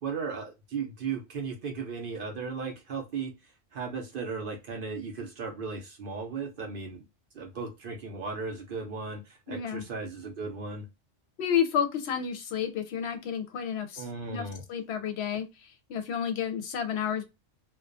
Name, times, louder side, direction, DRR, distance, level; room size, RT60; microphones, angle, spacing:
voice 1, 0.0-3.3 3.7-7.0 7.3-10.9 14.0-14.6, right 5 dB, 60° right, 0.7 m, -36 dB
voice 2, 9.5-9.8 11.4-17.3, left 8 dB, 70° left, 0.8 m, -31 dB
2.4 x 2.2 x 2.4 m
omnidirectional pair, 1.2 m